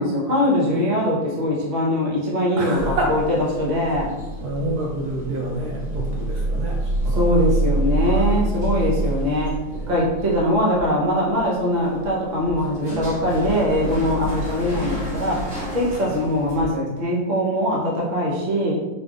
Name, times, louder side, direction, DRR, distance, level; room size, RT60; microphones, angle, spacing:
voice 1, 0.0-3.2 3.6-4.2 7.2-9.5 9.9-15.4 15.7-18.7, equal, 40° right, -4 dB, 0.6 m, -22 dB
voice 2, 2.6-3.2 4.4-7.5 8.0-8.3 9.7-10.0, right 1 dB, 70° right, -2 dB, 1.0 m, -28 dB
sound 1, 2.8-16.7, right 1 dB, 90° right, 2.2 m, -27 dB
4.1 x 3.4 x 2.4 m, 1.2 s
omnidirectional pair, 2.0 m